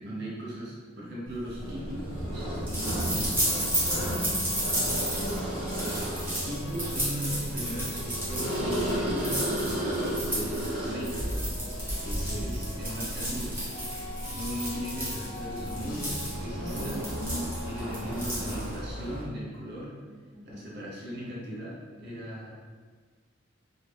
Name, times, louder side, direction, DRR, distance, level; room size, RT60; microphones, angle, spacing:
voice 1, 0.0-3.5 5.7-6.0 6.4-9.4 10.2-11.3 12.0-13.7 14.3-17.1 17.6-19.9 20.4-22.5, equal, 55° right, -5 dB, 0.6 m, -38 dB
sound 1, 1.5-18.9, right 1 dB, 10° right, 0.8 m, -33 dB
sound 2, 1.6-19.2, equal, 85° right, 1.0 m, -35 dB
sound 3, 2.1-9.9 10.5-18.5, left 1 dB, 85° left, 0.6 m, -45 dB
voice 2, 4.0-4.6 5.1-5.6 12.2-12.5 20.3-20.7, right 1 dB, 20° left, -5 dB, 0.5 m, -45 dB
2.5 x 2.0 x 3.2 m, 1.5 s
head